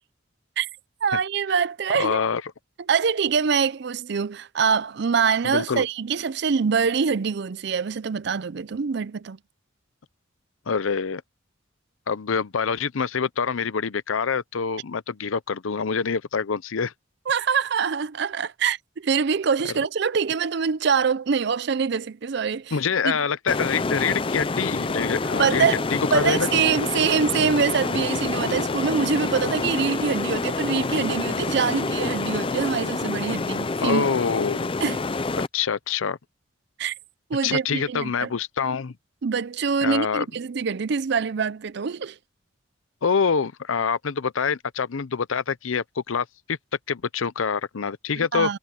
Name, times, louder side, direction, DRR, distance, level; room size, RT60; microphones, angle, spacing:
voice 1, 1.0-2.2 2.9-9.4 17.3-22.8 23.0-23.1 25.4-25.8 26.1-34.1 34.8-35.0 36.8-36.9 37.3-38.3 39.2-42.2 48.2-48.6, right 6 dB, 55° right, 0.5 m, -24 dB
voice 2, 1.9-2.4 5.4-5.8 10.7-11.2 12.1-16.9 22.7-25.7 25.9-26.5 33.8-34.7 35.5-36.2 37.4-38.9 39.8-40.3 43.0-46.6 46.9-48.5, left 6 dB, 80° left, 0.6 m, -25 dB
sound 1, 23.5-35.5, left 3 dB, 25° left, 0.5 m, -27 dB
head